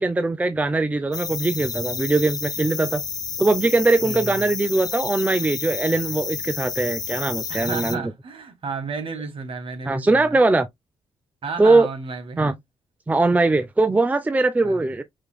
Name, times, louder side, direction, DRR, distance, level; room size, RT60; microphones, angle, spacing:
voice 1, 0.0-3.0 3.4-8.0 9.9-10.7 11.6-11.9 12.4-12.5 13.1-15.0, right 2 dB, 15° right, 0.5 m, -21 dB
sound 1, 1.1-8.0, left 6 dB, 40° left, 0.6 m, -30 dB
voice 2, 4.0-4.5 7.5-10.4 11.4-12.6 14.6-14.8, right 4 dB, 60° right, 1.4 m, -32 dB
5.0 x 3.0 x 2.2 m
cardioid pair, 75°, 10 cm